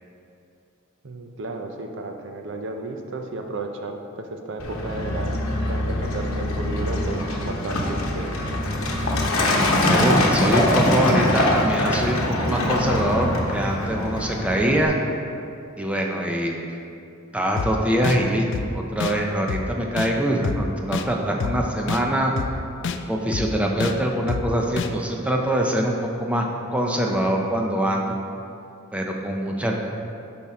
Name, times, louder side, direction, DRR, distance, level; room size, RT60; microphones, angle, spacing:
voice 1, 1.0-8.3, right 2 dB, 60° right, 4 dB, 0.6 m, -33 dB
Truck, 4.6-14.9, left 1 dB, 80° left, 0.9 m, -23 dB
voice 2, 9.8-15.0 15.8-16.7 17.3-22.3 23.1-28.2 28.9-29.8, right 1 dB, 5° right, 0 dB, 0.5 m, -23 dB
sound 1, 17.6-17.7 18.0-18.2 18.5-18.7 19.0-19.1 19.5-19.6 20.0-20.1 20.4-20.6 20.9-21.1 21.4-21.5 21.9-22.0 22.4-22.5 22.8-23.0 23.3-23.5 23.8-23.9 24.3-24.4 24.8-24.9, left 6 dB, 60° left, 0.3 m, -27 dB
7.1 x 4.3 x 4.8 m, 2.6 s
head